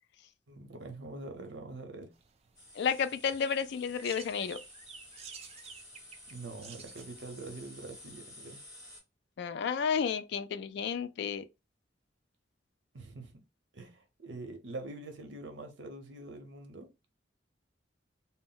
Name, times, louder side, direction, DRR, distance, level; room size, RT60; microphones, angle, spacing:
voice 1, 0.5-2.1 6.3-8.6 12.9-13.4 13.7-16.9, right 2 dB, 65° right, 0.7 m, -44 dB
sound 1, 2.1-8.1, right 6 dB, 35° right, 0.3 m, -52 dB
sound 2, 2.5-9.0, left 1 dB, 20° left, 1.1 m, -53 dB
voice 2, 2.7-4.6 9.4-11.4, left 6 dB, 65° left, 0.3 m, -31 dB
2.1 x 2.0 x 3.8 m
head